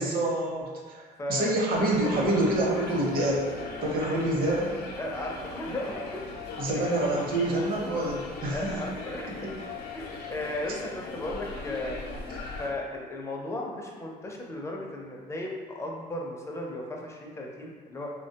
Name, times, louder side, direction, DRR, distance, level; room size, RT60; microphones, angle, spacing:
voice 1, 0.0-3.5 3.8-4.9 6.6-8.7 12.3-12.4, right 1 dB, 60° right, -2 dB, 0.7 m, -27 dB
voice 2, 1.2-1.5 4.0-4.2 5.0-6.2 6.7-6.9 8.5-9.6 9.9-12.0 12.6-18.1, left 1 dB, 15° left, -1 dB, 0.4 m, -35 dB
sound 1, 1.7-12.7, left 3 dB, 70° left, 0.5 m, -39 dB
3.1 x 2.1 x 2.7 m, 1.5 s
cardioid pair, 110°, 17 cm